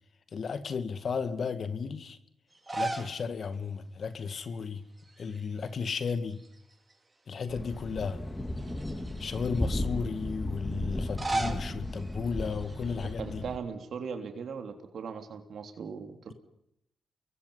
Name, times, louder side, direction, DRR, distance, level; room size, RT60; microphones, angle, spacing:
voice 1, 0.3-2.2 2.7-4.8 5.2-6.4 7.3-8.2 9.2-13.4, left 5 dB, 60° left, 2.0 m, -34 dB
sound 1, 2.5-3.2 3.5-3.6 5.0-5.5 5.8-6.9 7.5-7.6 8.5-9.6 10.9-13.1, right 2 dB, 30° right, 5.4 m, -37 dB
Thunder, 7.5-13.6, left 1 dB, 20° left, 4.0 m, -35 dB
voice 2, 13.2-16.3, right 6 dB, 70° right, 3.4 m, -39 dB
29.5 x 22.5 x 5.6 m
supercardioid pair, 40°, 0 cm